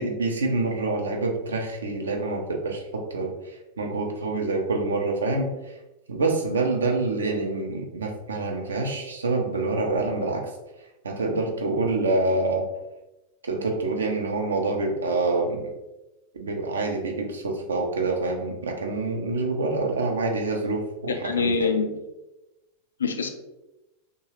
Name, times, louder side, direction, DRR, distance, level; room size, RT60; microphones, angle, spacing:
voice 1, 0.0-5.5 6.1-10.5 11.0-12.7 13.4-15.6 16.3-21.7, right 3 dB, 70° right, 2 dB, 0.5 m, -26 dB
voice 2, 21.1-22.0 23.0-23.3, left 5 dB, 70° left, 6 dB, 0.3 m, -25 dB
3.0 x 2.2 x 3.1 m, 1.0 s
figure-of-eight pair, 90°, 0 cm